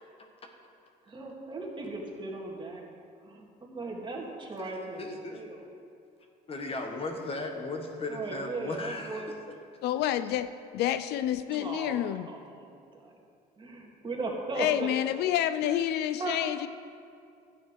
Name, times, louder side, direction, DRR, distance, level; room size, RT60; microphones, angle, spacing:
voice 1, 1.1-2.8 3.2-5.7 8.1-9.5 11.5-13.1 13.6-14.9 15.6-15.8 16.2-16.4, right 3 dB, 30° right, -1 dB, 2.0 m, -38 dB
voice 2, 5.0-5.4 6.5-9.3, left 2 dB, 35° left, 3 dB, 1.5 m, -36 dB
voice 3, 9.8-12.3 14.5-16.7, left 11 dB, 80° left, 12 dB, 0.4 m, -29 dB
12.5 x 8.5 x 4.7 m, 2.4 s
cardioid pair, 110°, 17 cm